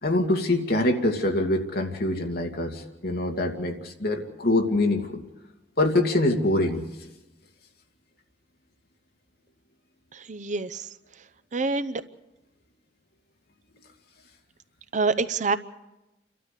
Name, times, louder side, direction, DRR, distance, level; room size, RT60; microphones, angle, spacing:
voice 1, 0.0-5.2 5.8-6.8, left 1 dB, 55° left, 3 dB, 2.4 m, -24 dB
voice 2, 10.1-10.9 11.5-12.0 14.9-15.6, right 3 dB, 45° right, 13 dB, 0.7 m, -26 dB
29.5 x 12.5 x 8.3 m, 1.0 s
head